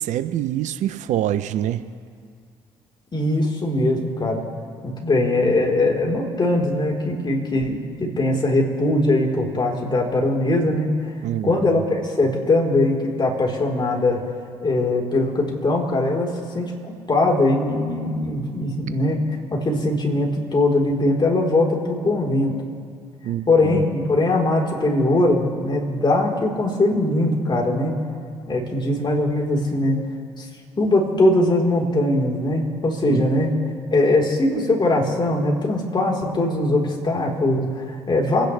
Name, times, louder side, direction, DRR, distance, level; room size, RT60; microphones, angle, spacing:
voice 1, 0.0-1.9 11.2-11.8 23.2-23.8 33.1-33.2, right 12 dB, 65° right, 12 dB, 0.8 m, -25 dB
voice 2, 3.1-4.4 4.8-10.9 11.4-14.2 14.6-19.2 19.5-22.6 23.5-28.0 28.5-30.0 30.4-30.5 30.8-33.5 33.9-38.5, left 2 dB, 35° left, -1 dB, 4.2 m, -21 dB
29.5 x 10.5 x 3.4 m, 2.2 s
hypercardioid pair, 50°, 13 cm